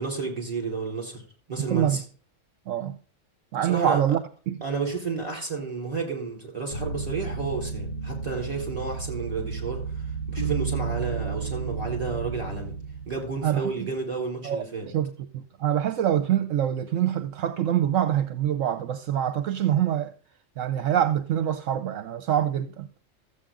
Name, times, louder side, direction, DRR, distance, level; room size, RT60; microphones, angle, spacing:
voice 1, 0.0-2.0 3.6-4.0 4.6-12.7 13.0-14.9, right 4 dB, 30° right, 4.5 m, -31 dB
voice 2, 2.7-3.0 3.5-4.6 13.4-13.9 14.4-15.1 15.3-20.1 20.6-22.9, right 10 dB, 75° right, 1.1 m, -25 dB
sound 1, 6.7-13.7, right 5 dB, 40° left, 2.1 m, -32 dB
14.0 x 8.1 x 3.7 m
omnidirectional pair, 1.4 m